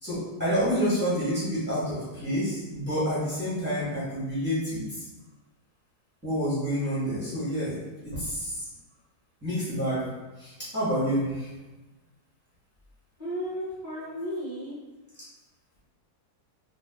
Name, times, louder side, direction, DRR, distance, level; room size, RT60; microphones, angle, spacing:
voice 1, 0.0-5.0 6.2-8.7 9.4-10.1 10.4-11.5, equal, 10° right, -12 dB, 1.2 m, -28 dB
voice 2, 13.2-14.8, equal, 35° left, -13 dB, 1.0 m, -34 dB
4.0 x 2.4 x 2.3 m, 1.1 s
omnidirectional pair, 1.7 m